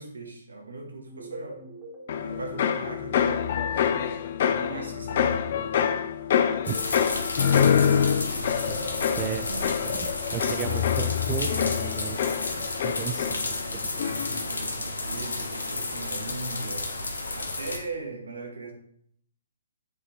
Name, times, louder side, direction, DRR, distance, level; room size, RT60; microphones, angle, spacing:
voice 1, 0.0-1.6 2.2-4.2 4.5-5.4 8.3-9.0 9.5-9.7 10.4-10.9 13.9-16.9 17.3-18.7, right 2 dB, 80° right, 2 dB, 1.6 m, -39 dB
sound 1, 1.1-4.0, right 1 dB, ahead, 2.3 m, -46 dB
sound 2, 2.1-13.7 14.0-14.5, left 8 dB, 55° left, 0.5 m, -26 dB
sound 3, 6.7-17.8, left 2 dB, 80° left, 1.1 m, -32 dB
voice 2, 9.2-9.5 9.9-13.9, right 10 dB, 30° right, 7 dB, 0.3 m, -35 dB
7.6 x 3.8 x 3.7 m, 0.67 s
figure-of-eight pair, 130°, 0 cm